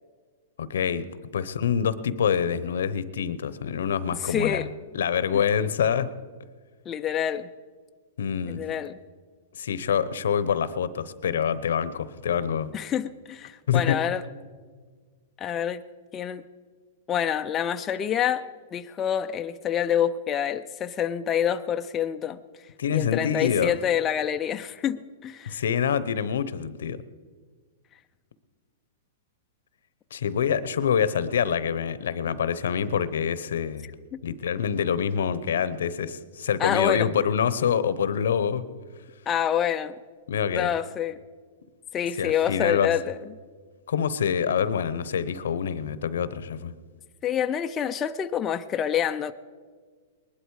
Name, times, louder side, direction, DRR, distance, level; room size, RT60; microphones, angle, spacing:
voice 1, 0.6-1.1 1.3-4.7 4.9-6.1 8.2-8.6 9.6-12.7 13.7-14.0 22.8-23.7 25.5-27.0 30.1-33.9 34.2-38.6 40.3-40.7 42.2-42.9 43.9-46.7, left 7 dB, 85° left, 0.8 m, -26 dB
voice 2, 4.2-4.7 6.9-7.5 8.5-9.0 12.7-14.2 15.4-15.8 16.1-16.4 17.1-18.5 18.7-22.4 22.9-25.6 34.1-34.2 36.6-37.1 39.3-39.9 40.5-41.2 41.9-43.2 47.2-49.3, left 9 dB, 20° left, 0.4 m, -27 dB
20.0 x 11.5 x 4.8 m
hypercardioid pair, 155°, 0 cm